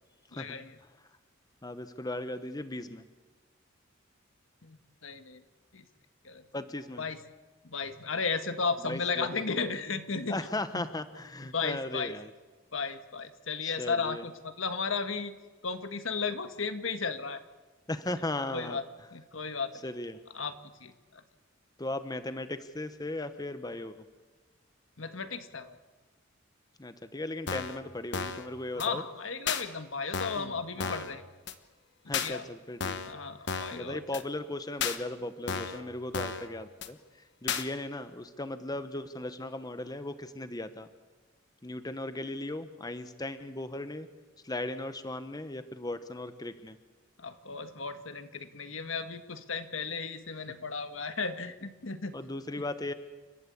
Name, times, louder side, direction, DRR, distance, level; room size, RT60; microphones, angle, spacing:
voice 1, 0.3-0.8 4.6-5.4 5.7-5.9 6.2-6.4 7.0-7.2 7.6-10.5 10.7-10.9 11.5-12.1 12.7-15.3 15.6-17.4 18.5-18.8 19.1-19.7 20.3-21.2 25.0-25.8 28.7-31.2 32.2-32.4 33.0-34.2 47.2-52.1, left 4 dB, 85° left, 9 dB, 1.5 m, -35 dB
voice 2, 1.6-3.1 6.5-7.0 8.9-9.3 10.3-12.3 13.6-14.2 17.9-18.8 19.8-20.2 21.8-24.0 26.8-29.0 30.4-30.5 30.8-31.1 32.1-33.1 33.7-37.0 37.4-40.9 41.6-44.1 44.4-46.8 52.1-52.9, left 2 dB, 20° left, 10 dB, 0.9 m, -37 dB
sound 1, 27.5-27.8 28.1-28.5 28.8-28.9 29.5-29.6 30.1-30.5 30.8-31.1 31.5-31.6 32.1-32.3 32.8-33.1 33.5-33.8 34.1-34.2 34.8-35.0 35.5-35.8 36.1-36.5 36.8-36.9 37.5-37.6, left 6 dB, 60° left, 1.3 m, -33 dB
30.0 x 12.5 x 8.4 m, 1.3 s
head